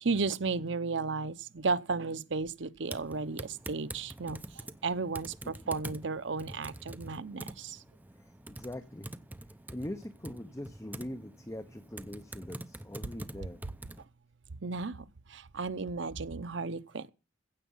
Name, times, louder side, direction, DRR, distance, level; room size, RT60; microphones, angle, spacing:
voice 1, 0.0-7.8 13.4-13.5 14.6-17.1, right 4 dB, 65° right, 0.8 m, -34 dB
Typing, 2.9-14.0, right 1 dB, 10° right, 0.6 m, -46 dB
voice 2, 8.2-9.1 9.7-13.6, left 1 dB, 15° left, 0.8 m, -42 dB
15.5 x 8.3 x 5.6 m
head